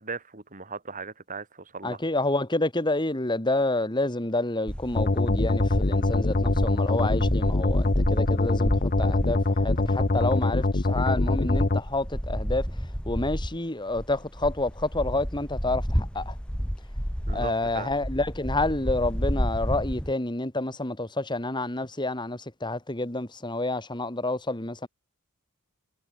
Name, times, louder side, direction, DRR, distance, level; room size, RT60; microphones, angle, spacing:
voice 1, 0.0-2.1 17.3-17.9, right 4 dB, 35° right, 3.7 m, -38 dB
voice 2, 1.8-12.7 13.1-16.3 17.3-24.9, left 2 dB, 20° left, 2.5 m, -29 dB
sound 1, 4.7-13.6 13.9-20.1, equal, 5° left, 3.3 m, -31 dB
sound 2, 5.0-11.8, left 2 dB, 40° left, 0.9 m, -24 dB
head